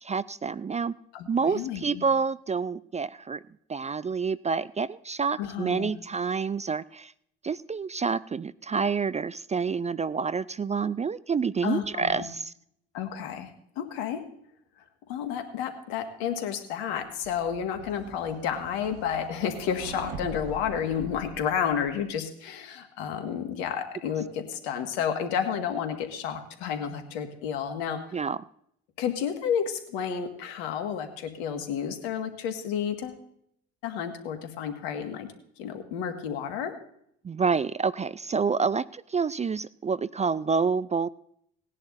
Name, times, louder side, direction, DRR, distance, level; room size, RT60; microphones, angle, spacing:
voice 1, 0.0-1.0 1.3-3.4 3.7-7.1 7.4-12.5 28.1-28.4 37.2-41.1, right 5 dB, 20° right, 19 dB, 0.4 m, -28 dB
voice 2, 1.1-2.0 5.4-5.9 11.6-12.3 12.9-13.5 13.8-14.2 15.1-28.0 29.0-33.2 33.8-35.3 35.6-36.7, left 8 dB, 80° left, 7 dB, 1.8 m, -31 dB
sound 1, 17.2-22.2, right 3 dB, 75° right, 1.5 m, -43 dB
18.5 x 10.5 x 2.6 m, 0.70 s
hypercardioid pair, 55°, 32 cm